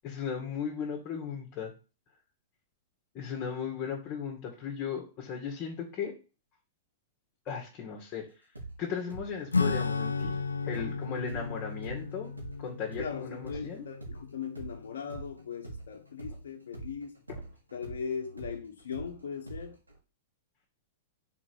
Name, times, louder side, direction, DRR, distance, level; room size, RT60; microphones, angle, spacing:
voice 1, 0.0-1.7 3.1-6.2 7.5-8.5 8.8-12.3 12.6-13.9, left 7 dB, 35° left, 1.9 m, -36 dB
sound 1, 8.5-16.4 16.7-20.0, right 3 dB, 90° right, 2.1 m, -44 dB
Acoustic guitar / Strum, 9.5-15.5, left 4 dB, 80° left, 0.6 m, -34 dB
voice 2, 13.0-17.2 17.7-19.8, left 6 dB, 65° left, 1.2 m, -39 dB
6.1 x 4.2 x 6.4 m
figure-of-eight pair, 100°, 0 cm